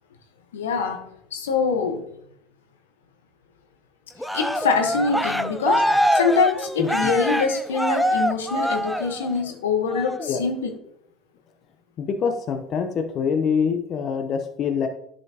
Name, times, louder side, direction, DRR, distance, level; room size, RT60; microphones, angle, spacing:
voice 1, 0.5-2.1 4.2-10.7, left 5 dB, 85° left, 1.0 m, -24 dB
Cheering, 4.2-9.4 9.9-10.3, equal, ahead, 0.4 m, -24 dB
voice 2, 12.0-14.9, left 6 dB, 50° left, 0.7 m, -25 dB
10.5 x 5.4 x 2.9 m
hypercardioid pair, 70°, 0 cm